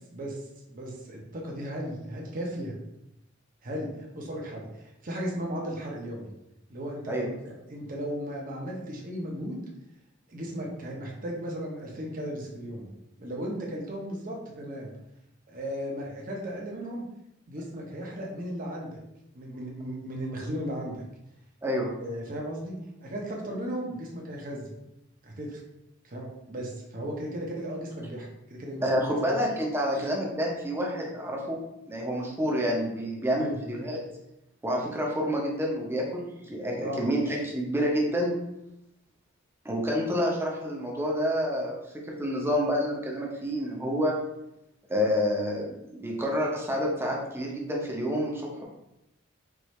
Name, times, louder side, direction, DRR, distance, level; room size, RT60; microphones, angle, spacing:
voice 1, 0.1-2.7 3.6-6.3 6.7-9.7 10.3-12.9 13.2-14.9 15.5-17.0 17.5-19.0 19.3-21.0 22.0-24.8 25.2-25.6 26.0-29.3 30.0-30.1 33.3-33.6 36.8-37.0, equal, 45° right, -2 dB, 0.9 m, -36 dB
voice 2, 21.6-21.9 28.8-31.6 31.9-34.0 34.6-38.3 39.6-41.8 42.1-44.1 44.9-48.6, equal, 10° right, -2 dB, 0.8 m, -28 dB
4.7 x 2.6 x 3.1 m, 0.86 s
head